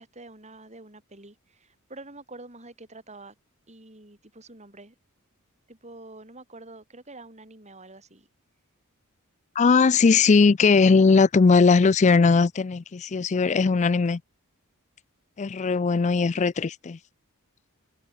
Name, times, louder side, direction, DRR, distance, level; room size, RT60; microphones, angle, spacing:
voice 1, 0.0-3.3 3.7-4.9 5.7-8.3, right 2 dB, 30° right, 4.7 m, -46 dB
voice 2, 9.6-14.2 15.4-17.0, left 4 dB, 30° left, 0.4 m, -19 dB
head